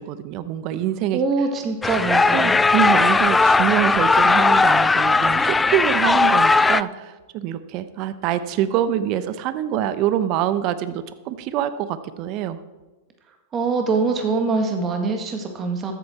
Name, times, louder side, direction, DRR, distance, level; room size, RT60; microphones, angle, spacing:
voice 1, 0.0-1.2 2.3-12.6, right 11 dB, 50° right, 13 dB, 0.8 m, -25 dB
voice 2, 1.1-2.6 13.5-15.9, right 4 dB, 30° right, 4 dB, 1.6 m, -23 dB
sound 1, 1.8-6.8, left 3 dB, 10° left, 0.3 m, -17 dB
13.5 x 8.5 x 4.3 m, 1.2 s
hypercardioid pair, 105°, 0 cm